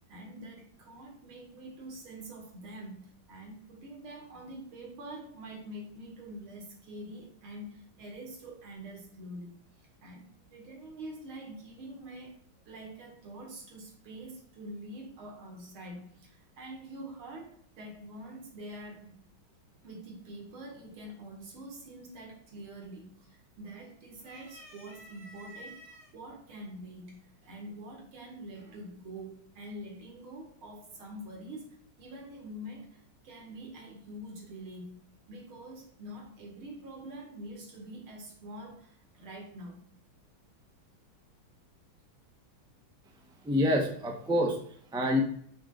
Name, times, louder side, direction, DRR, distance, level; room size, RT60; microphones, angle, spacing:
voice 1, 0.1-12.4 12.6-19.2 19.8-35.0 35.3-39.8, right 1 dB, 85° right, 0 dB, 2.7 m, -45 dB
Cat meow, 22.5-22.7 23.1-23.8 24.2-26.1 27.0-27.1 28.3-28.8, equal, 20° right, 3.2 m, -51 dB
voice 2, 43.4-45.2, left 1 dB, 5° right, 1 dB, 0.6 m, -27 dB
9.8 x 5.8 x 2.5 m, 0.62 s
omnidirectional pair, 2.3 m